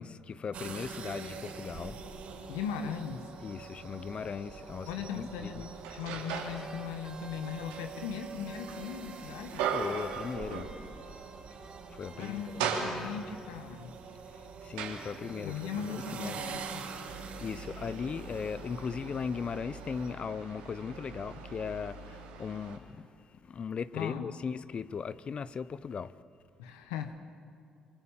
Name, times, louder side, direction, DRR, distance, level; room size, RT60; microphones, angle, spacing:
voice 1, 0.0-2.0 3.4-5.5 9.7-10.7 11.9-12.4 14.3-16.4 17.1-23.1 23.4-26.1, left 6 dB, 45° left, 1.0 m, -38 dB
sound 1, 0.5-20.2, right 5 dB, 65° right, 4.7 m, -45 dB
voice 2, 2.5-3.2 4.9-9.6 12.2-13.9 15.4-16.8 23.9-24.3 26.6-27.2, left 7 dB, 85° left, 1.4 m, -38 dB
sound 2, 4.4-4.5 5.1-6.7 7.1-11.2 11.5-11.6 12.0-13.5 14.1-22.8, right 6 dB, 85° right, 3.1 m, -39 dB
sound 3, 6.5-9.7 9.9-13.3, right 3 dB, 30° right, 3.5 m, -55 dB
28.0 x 24.5 x 7.4 m
hypercardioid pair, 55°, 2 cm